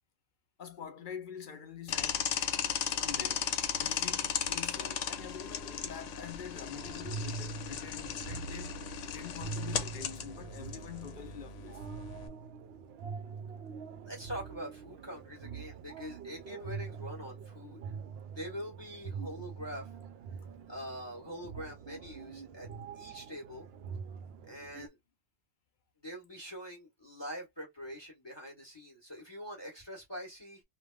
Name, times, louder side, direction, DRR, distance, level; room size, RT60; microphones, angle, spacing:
voice 1, 0.6-2.4 3.0-3.5 3.8-11.8, left 8 dB, 50° left, 0.7 m, -46 dB
sound 1, 1.9-12.3, left 8 dB, 80° left, 1.0 m, -36 dB
sound 2, 6.8-24.9, right 5 dB, 65° right, 0.7 m, -44 dB
voice 2, 14.0-17.9 18.3-19.9 20.7-22.7 22.9-23.7 24.5-25.0 26.0-30.6, equal, 20° left, 1.2 m, -44 dB
3.2 x 2.3 x 2.3 m
omnidirectional pair, 1.3 m